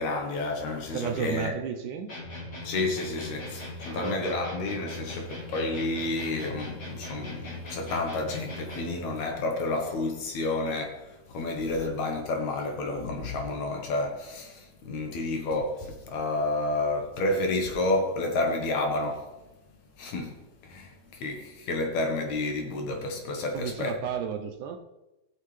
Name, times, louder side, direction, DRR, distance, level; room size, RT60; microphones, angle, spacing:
voice 1, 0.0-1.5 2.6-19.3 20.0-20.4 20.6-24.0, left 2 dB, 65° left, 2.3 m, -30 dB
voice 2, 0.9-2.1 3.9-4.4 23.5-24.8, right 8 dB, 75° right, 2.1 m, -33 dB
sound 1, 2.1-9.1, left 1 dB, 35° left, 3.0 m, -39 dB
17.0 x 6.5 x 3.2 m
omnidirectional pair, 3.8 m